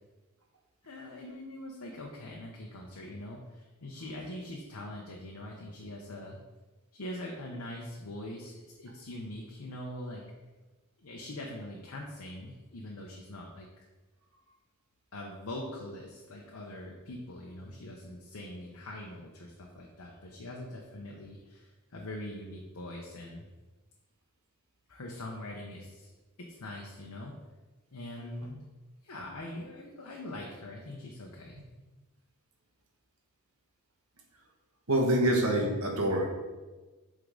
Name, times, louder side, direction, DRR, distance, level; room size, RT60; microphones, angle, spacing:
voice 1, 0.8-6.4 6.9-10.2 11.0-13.7 15.1-23.4 24.9-26.1 26.4-27.3 27.9-28.6 29.0-31.6, left 1 dB, 70° left, -1 dB, 0.8 m, -43 dB
voice 2, 34.9-36.3, right 1 dB, 70° right, 0 dB, 1.3 m, -26 dB
8.1 x 3.7 x 3.7 m, 1.2 s
head